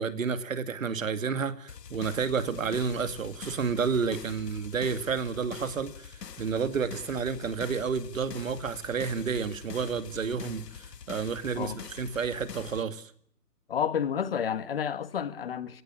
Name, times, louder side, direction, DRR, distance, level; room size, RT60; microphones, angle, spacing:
voice 1, 0.0-13.1, right 5 dB, 55° right, 2.3 m, -30 dB
sound 1, 1.7-12.8, left 7 dB, 80° left, 1.4 m, -45 dB
voice 2, 13.7-15.8, left 8 dB, 35° left, 1.5 m, -30 dB
30.0 x 17.5 x 9.9 m
hypercardioid pair, 165°, 48 cm